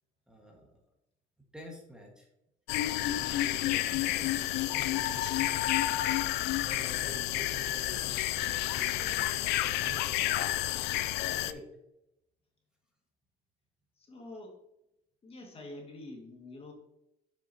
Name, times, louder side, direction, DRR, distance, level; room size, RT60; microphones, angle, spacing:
voice 1, 0.3-0.6 1.5-2.3 2.8-5.9 6.6-10.2 11.4-11.6, equal, 5° right, 0 dB, 1.4 m, -48 dB
sound 1, 2.7-11.5, left 15 dB, 90° left, 0.4 m, -30 dB
voice 2, 14.0-14.6 15.2-16.7, left 2 dB, 35° left, 1 dB, 1.8 m, -46 dB
7.5 x 6.3 x 2.7 m, 0.87 s
cardioid pair, 110°, 17 cm